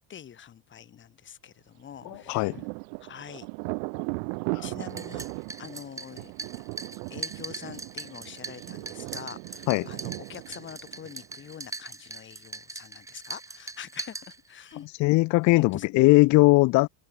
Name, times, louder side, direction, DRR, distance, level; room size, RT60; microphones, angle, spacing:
voice 1, 0.1-2.5 3.0-3.5 4.6-5.3 5.6-6.3 7.1-14.9 15.6-15.9, left 9 dB, 30° left, 2.2 m, -44 dB
Thunder, 2.0-11.5, right 37 dB, 75° right, 1.9 m, -37 dB
voice 2, 2.1-2.6 4.5-4.7 9.7-9.9 14.9-16.9, left 22 dB, 45° left, 0.5 m, -20 dB
sound 1, 4.8-14.8, right 3 dB, 10° right, 0.7 m, -41 dB
open air
cardioid pair, 145°, 41 cm